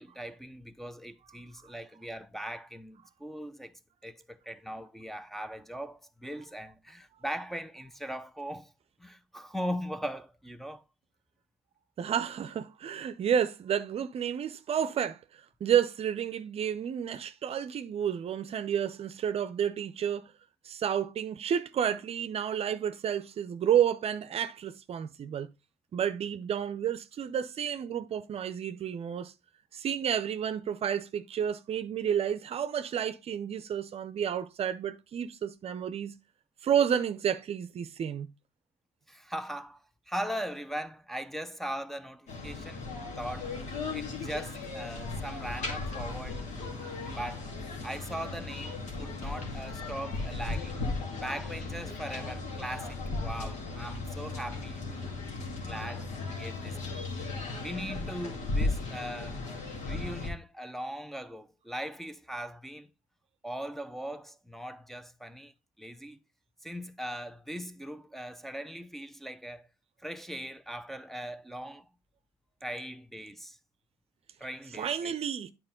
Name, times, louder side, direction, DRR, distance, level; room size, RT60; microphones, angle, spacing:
voice 1, 0.0-3.7 4.0-8.7 9.0-10.8 39.1-42.8 43.2-43.5 43.9-46.8 47.2-47.5 47.8-50.8 51.2-57.0 57.6-59.4 59.8-62.9 63.4-65.5 65.8-66.2 66.6-69.7 70.0-71.8 72.6-73.6 74.4-75.1, equal, ahead, 0.7 m, -40 dB
voice 2, 12.0-15.2 15.6-20.2 20.6-25.5 25.9-29.3 29.7-36.1 36.6-38.3 74.4-75.5, right 9 dB, 50° right, 0.7 m, -30 dB
sound 1, 42.3-60.3, left 3 dB, 65° left, 2.3 m, -36 dB
8.8 x 4.4 x 3.8 m
hypercardioid pair, 60°, 13 cm